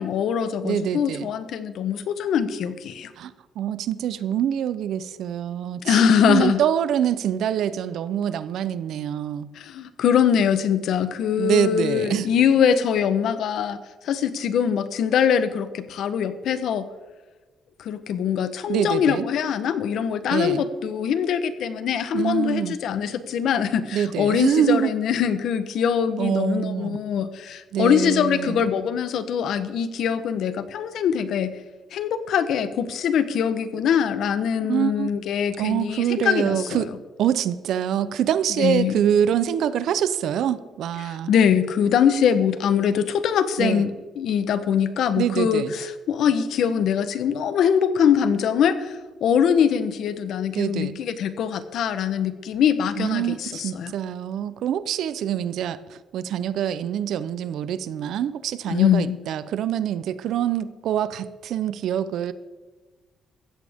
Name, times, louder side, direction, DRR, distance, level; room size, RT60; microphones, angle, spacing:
voice 1, 0.0-3.1 5.8-6.6 9.5-13.8 14.0-16.9 17.8-31.6 31.9-36.9 38.6-39.0 41.0-43.9 44.2-53.9 58.7-59.2, left 8 dB, 70° left, 12 dB, 1.1 m, -23 dB
voice 2, 0.6-1.3 3.2-9.5 11.4-12.3 18.7-19.3 20.3-20.6 22.1-22.8 23.9-24.9 26.2-27.0 27.7-28.6 34.7-35.1 35.6-36.9 37.2-41.3 43.6-43.9 45.2-45.7 50.5-51.0 53.0-62.3, right 9 dB, 75° right, 15 dB, 0.8 m, -25 dB
16.0 x 14.0 x 3.7 m, 1.3 s
cardioid pair, 125°, 0 cm